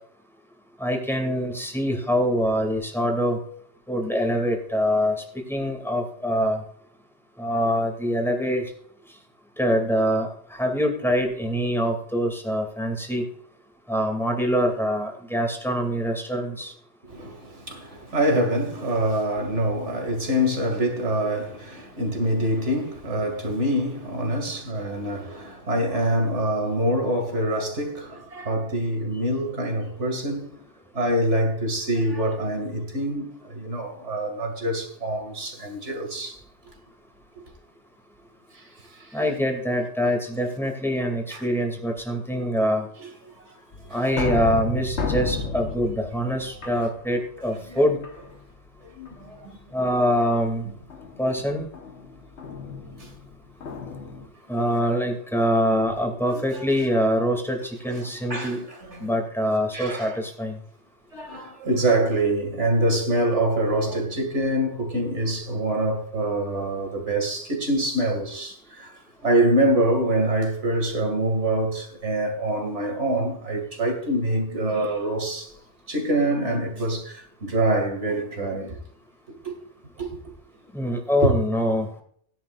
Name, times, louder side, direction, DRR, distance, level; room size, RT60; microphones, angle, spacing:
voice 1, 0.8-3.4 3.9-6.6 7.4-8.6 9.6-13.2 13.9-16.7 39.1-42.9 43.9-48.0 49.7-50.7 51.2-51.7 54.5-58.6 59.0-60.6 80.7-82.0, equal, ahead, 2.6 m, -24 dB
voice 2, 17.0-30.6 30.9-36.4 38.5-39.2 41.3-41.5 43.0-43.6 43.9-44.0 47.5-47.9 48.8-49.9 53.0-53.1 56.3-56.6 57.9-59.1 59.7-60.2 61.1-75.5 75.9-78.8 79.3-79.5 80.0-80.2 81.2-81.3, right 1 dB, 75° right, 2.8 m, -25 dB
sound 1, 43.7-47.5 48.0-48.6 49.1-49.5 50.9-54.3, left 3 dB, 70° left, 1.5 m, -32 dB
17.0 x 10.5 x 2.5 m
omnidirectional pair, 1.2 m